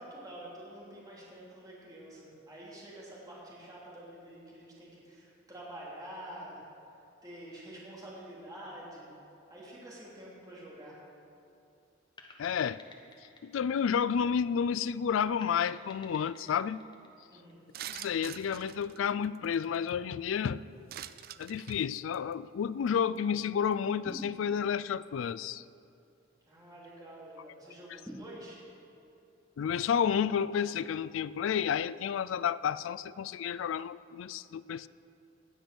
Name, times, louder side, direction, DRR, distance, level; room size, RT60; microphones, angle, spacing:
voice 1, 0.0-6.6 7.2-9.1 9.5-11.0 17.3-17.6 26.5-28.6, right 1 dB, 20° right, -6 dB, 3.1 m, -47 dB
sound 1, 12.2-14.7 15.4-18.0, left 3 dB, 25° left, 1.1 m, -55 dB
voice 2, 12.4-12.8 13.4-16.8 17.9-20.6 21.4-25.6 29.6-34.9, left 7 dB, 80° left, 18 dB, 0.3 m, -31 dB
sound 2, 17.7-19.9 20.9-21.8 22.1-22.3 22.9-23.0 23.2-23.4 23.7-23.8, right 12 dB, 50° right, 0.3 m, -44 dB
sound 3, 24.1-24.9 28.1-29.0, equal, ahead, 0.6 m, -46 dB
18.0 x 6.2 x 6.8 m, 2.6 s
head